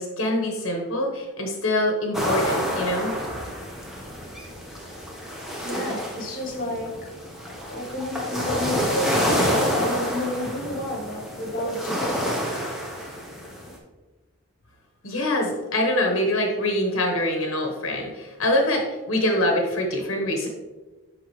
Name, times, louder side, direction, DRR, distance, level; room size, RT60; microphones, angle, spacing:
voice 1, 0.0-3.5 15.0-20.5, left 1 dB, 65° left, 1 dB, 1.1 m, -24 dB
sound 1, 2.1-13.8, equal, ahead, 1.0 m, -28 dB
voice 2, 5.6-7.1 7.7-9.1 9.7-12.2, left 1 dB, 40° left, 1 dB, 1.3 m, -31 dB
10.5 x 3.8 x 3.2 m, 1.2 s
head